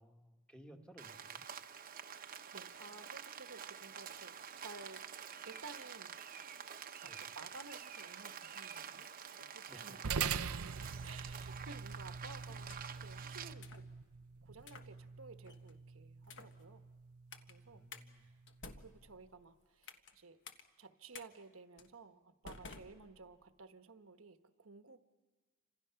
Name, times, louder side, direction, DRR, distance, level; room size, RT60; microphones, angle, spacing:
voice 1, 0.0-1.4 7.0-7.3 9.7-10.0 17.6-18.2, equal, 5° left, 4 dB, 1.6 m, -58 dB
Rain, 1.0-13.5, right 7 dB, 40° right, 0.9 m, -49 dB
voice 2, 2.5-5.0 5.4-6.1 6.9-13.8 14.4-16.8 17.5-17.9 18.1-18.4 18.8-20.4 20.8-25.0, right 4 dB, 65° right, 9 dB, 1.2 m, -55 dB
sound 1, 10.0-18.7, right 6 dB, 85° right, 0.7 m, -44 dB
sound 2, 12.5-13.1 13.6-13.9 14.6-14.9 15.4-15.7 16.2-16.6 17.3-17.5 17.9-18.0 18.5-20.1 20.4-20.6 21.1-21.3 21.8-21.9 22.4-23.5, left 4 dB, 55° left, 1.4 m, -53 dB
29.5 x 26.5 x 5.8 m, 1.4 s
head